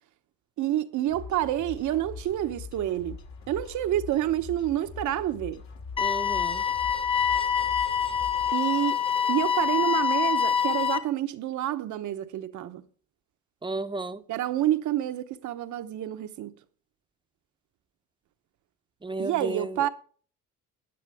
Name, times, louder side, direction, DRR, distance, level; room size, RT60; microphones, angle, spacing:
voice 1, 0.6-3.2 3.5-5.6 8.5-9.0 9.3-12.8 14.3-16.5 19.2-19.9, right 12 dB, 65° right, 1.0 m, -28 dB
sound 1, 1.1-8.6, left 5 dB, 60° left, 2.3 m, -43 dB
sound 2, 6.0-11.0, left 7 dB, 15° left, 1.3 m, -25 dB
voice 2, 6.0-6.6 13.6-14.2 19.0-19.8, right 3 dB, 15° right, 0.8 m, -33 dB
15.5 x 10.0 x 3.5 m
cardioid pair, 100°, 33 cm